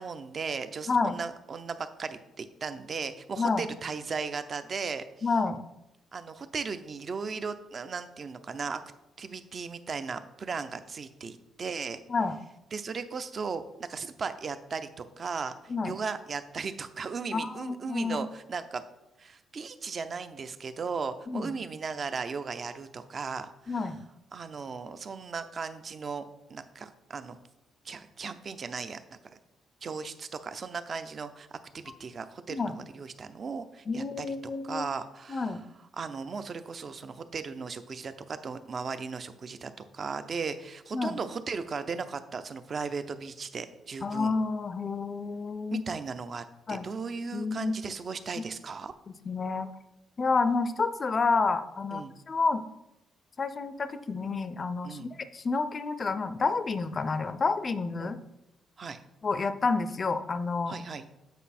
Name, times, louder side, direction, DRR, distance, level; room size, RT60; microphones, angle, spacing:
voice 1, 0.0-5.0 6.1-8.8 9.2-12.0 12.7-18.8 19.2-23.9 24.3-26.2 26.5-27.4 27.8-29.4 29.8-31.5 31.7-35.6 36.0-44.3 45.7-48.9 51.9-52.1 54.8-55.1 58.0-58.1 58.8-59.0 60.7-61.1, right 5 dB, 40° right, 11 dB, 0.5 m, -37 dB
voice 2, 5.2-5.6 12.1-12.3 15.7-15.9 17.3-18.2 21.3-21.5 23.7-24.0 32.5-32.7 33.9-34.9 35.3-35.6 40.9-41.2 44.0-45.8 46.7-46.9 47.3-47.7 48.4-48.5 49.1-49.7 50.2-52.6 53.4-58.2 59.2-60.8, left 4 dB, 35° left, 11 dB, 0.5 m, -29 dB
8.1 x 4.7 x 4.2 m, 0.92 s
cardioid pair, 115°, 0 cm